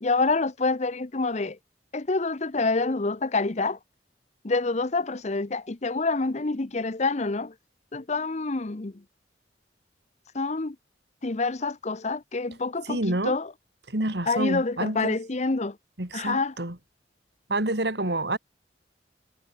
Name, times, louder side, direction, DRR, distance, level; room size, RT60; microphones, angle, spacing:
voice 1, 0.0-1.6 1.9-3.8 4.4-7.5 7.9-9.0 10.3-10.8 11.2-13.5 14.3-15.8 16.1-16.5, left 3 dB, 40° left, 0.8 m, -27 dB
voice 2, 12.8-13.4 13.9-15.2 16.0-16.8 17.5-18.4, right 1 dB, 65° right, 3.3 m, -28 dB
head